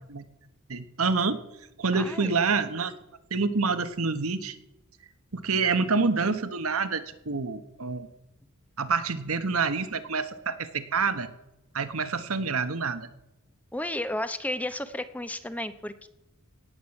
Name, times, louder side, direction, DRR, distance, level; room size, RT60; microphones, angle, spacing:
voice 1, 0.7-1.4 1.8-2.9 3.3-4.5 5.3-8.1 8.8-11.3 11.7-13.1, right 4 dB, 85° right, 10 dB, 1.3 m, -27 dB
voice 2, 1.9-2.4 13.7-16.1, left 1 dB, 5° left, 11 dB, 0.8 m, -33 dB
17.5 x 8.3 x 7.2 m, 0.89 s
head